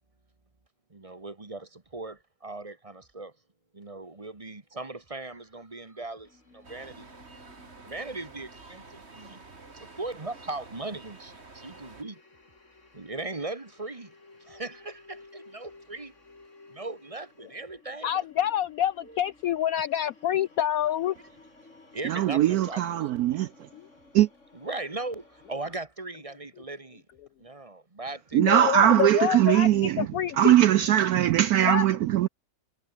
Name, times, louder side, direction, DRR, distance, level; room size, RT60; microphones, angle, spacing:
voice 1, 0.9-3.3 3.7-7.1 7.9-9.4 10.0-12.2 12.9-14.1 14.4-16.1 16.7-18.2 19.0-19.2 20.3-20.4 21.9-23.4 24.5-27.0 27.4-28.6, right 2 dB, 20° right, 1.5 m, -38 dB
sound 1, 6.2-25.8, left 3 dB, 40° left, 3.8 m, -56 dB
sound 2, 6.6-12.0, right 3 dB, 35° right, 2.8 m, -49 dB
voice 2, 18.0-21.2 23.7-23.8 28.3-30.5 31.6-31.8, left 11 dB, 70° left, 0.8 m, -27 dB
voice 3, 22.0-23.5 24.1-24.3 28.3-30.1 30.4-32.3, right 12 dB, 70° right, 0.9 m, -21 dB
omnidirectional pair, 1.9 m